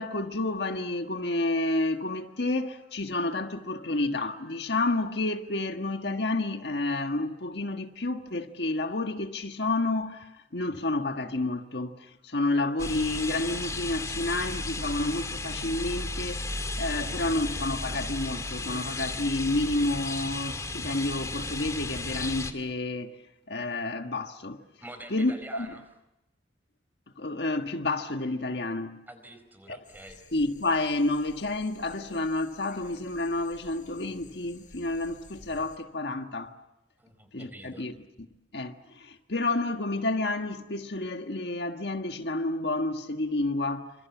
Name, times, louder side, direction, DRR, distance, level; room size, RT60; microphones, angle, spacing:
voice 1, 0.0-23.2 23.5-24.6 25.1-25.8 27.2-29.0 29.7-29.8 30.3-36.5 37.3-37.9 38.5-43.9, left 2 dB, 65° left, 1.6 m, -30 dB
sound 1, 12.8-22.5, left 2 dB, 20° left, 2.4 m, -34 dB
voice 2, 17.0-17.4 24.8-25.8 29.1-30.2 37.0-37.9, right 1 dB, 10° right, 4.8 m, -46 dB
sound 2, 29.8-35.8, left 3 dB, 45° left, 6.4 m, -53 dB
28.5 x 26.5 x 7.3 m
head